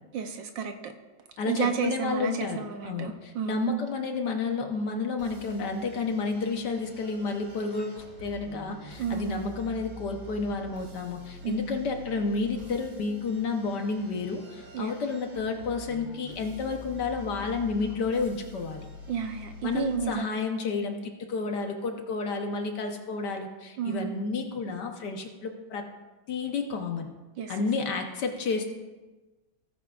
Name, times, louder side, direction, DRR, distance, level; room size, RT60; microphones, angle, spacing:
voice 1, 0.1-0.9 1.5-3.8 9.0-9.4 11.4-11.8 14.7-14.9 19.1-20.3 23.8-24.2 27.4-27.5, right 7 dB, 70° right, 6 dB, 1.3 m, -31 dB
voice 2, 1.4-18.9 19.6-25.9 26.3-27.1 27.5-28.6, left 4 dB, 60° left, 4 dB, 1.4 m, -31 dB
sound 1, 5.2-20.0, left 1 dB, 45° right, 2.1 m, -47 dB
17.0 x 9.6 x 2.4 m, 1.2 s
omnidirectional pair, 2.3 m